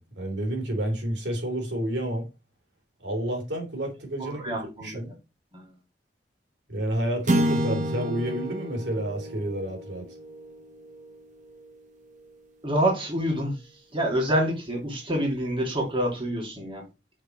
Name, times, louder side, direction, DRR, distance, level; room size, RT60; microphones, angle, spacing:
voice 1, 0.0-2.3 3.0-4.5 4.8-5.1 6.7-10.1, right 1 dB, 80° right, 3.1 m, -30 dB
voice 2, 4.2-4.9 5.5-5.6 12.6-16.8, right 1 dB, 30° right, 2.9 m, -27 dB
sound 1, 7.3-11.7, right 1 dB, 45° right, 1.2 m, -30 dB
6.6 x 4.5 x 6.3 m
head